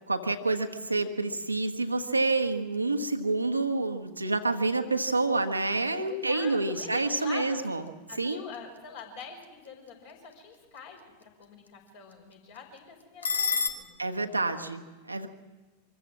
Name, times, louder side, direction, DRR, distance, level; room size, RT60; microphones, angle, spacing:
voice 1, 0.1-7.8 8.2-8.4 14.0-15.3, right 2 dB, 85° right, 4 dB, 1.3 m, -28 dB
sound 1, 1.9-13.7, left 5 dB, 75° left, 1.2 m, -40 dB
voice 2, 6.1-7.7 8.1-14.0, left 6 dB, 55° left, 1 dB, 5.2 m, -45 dB
24.5 x 14.5 x 7.5 m, 1.2 s
figure-of-eight pair, 90°, 0 cm